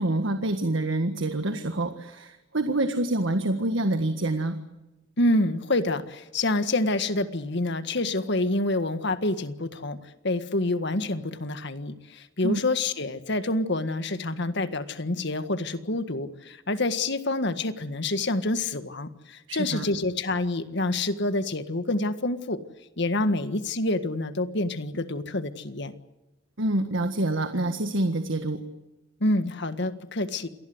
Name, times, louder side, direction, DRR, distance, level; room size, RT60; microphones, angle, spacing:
voice 1, 0.0-4.6 12.4-12.6 19.5-19.9 26.6-28.6, right 1 dB, 80° right, 7 dB, 1.6 m, -26 dB
voice 2, 5.2-10.0 10.2-22.6 23.0-25.9 29.2-30.5, left 2 dB, 65° left, 10 dB, 1.7 m, -27 dB
27.5 x 19.5 x 8.0 m, 1.0 s
head